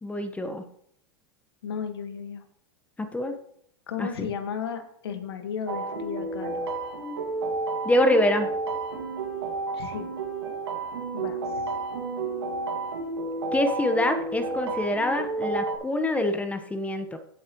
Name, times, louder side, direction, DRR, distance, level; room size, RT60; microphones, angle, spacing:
voice 1, 0.0-0.6 3.0-3.3 4.0-4.3 7.8-8.5 13.5-17.2, left 1 dB, 10° left, 7 dB, 1.1 m, -25 dB
voice 2, 1.6-2.4 3.9-6.7 9.7-10.1 11.1-11.6, left 7 dB, 85° left, 7 dB, 1.7 m, -34 dB
sound 1, 5.7-15.8, right 3 dB, 90° right, 2.1 m, -31 dB
16.5 x 7.2 x 3.1 m, 0.68 s
hypercardioid pair, 110°, 13 cm